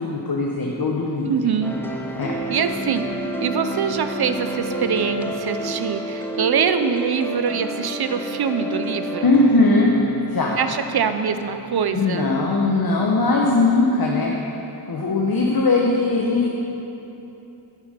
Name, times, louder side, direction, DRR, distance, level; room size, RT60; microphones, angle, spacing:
voice 1, 0.0-1.5 2.2-2.4 9.2-10.0 10.3-10.6 11.9-14.3 14.9-16.5, left 3 dB, 55° left, -2 dB, 1.1 m, -20 dB
voice 2, 1.2-1.7 2.5-3.0 3.4-9.3 10.6-12.3, right 6 dB, 60° right, 9 dB, 0.7 m, -24 dB
sound 1, 1.6-13.7, right 1 dB, 5° left, 1.1 m, -31 dB
9.7 x 8.2 x 5.2 m, 3.0 s
cardioid pair, 55°, 43 cm